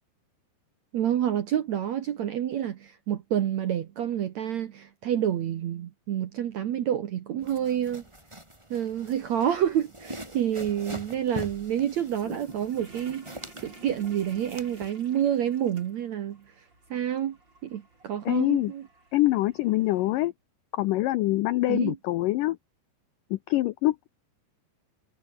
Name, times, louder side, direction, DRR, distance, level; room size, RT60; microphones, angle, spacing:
voice 1, 0.9-8.0 8.7-13.2 13.6-16.4 16.9-17.4 17.6-18.8 21.7-22.0, right 10 dB, 65° right, 1.8 m, -28 dB
sound 1, 7.4-14.9, right 1 dB, 5° right, 4.4 m, -43 dB
sound 2, 12.2-20.3, right 2 dB, 25° right, 7.2 m, -49 dB
voice 2, 18.3-18.7 19.1-20.3 20.7-22.6 23.3-24.1, left 17 dB, 90° left, 1.9 m, -25 dB
omnidirectional pair, 4.8 m